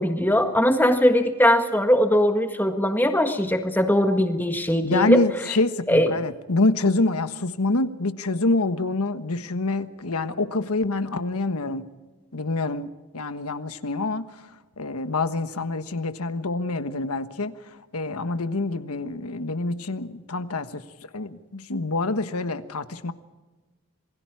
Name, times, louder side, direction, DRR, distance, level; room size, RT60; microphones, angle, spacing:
voice 1, 0.0-5.2 5.9-6.1, equal, 10° left, 6 dB, 1.6 m, -20 dB
voice 2, 4.8-11.9 12.3-14.5 14.8-20.8 21.1-23.1, left 2 dB, 85° left, 11 dB, 1.3 m, -26 dB
27.5 x 21.0 x 4.8 m, 1.2 s
head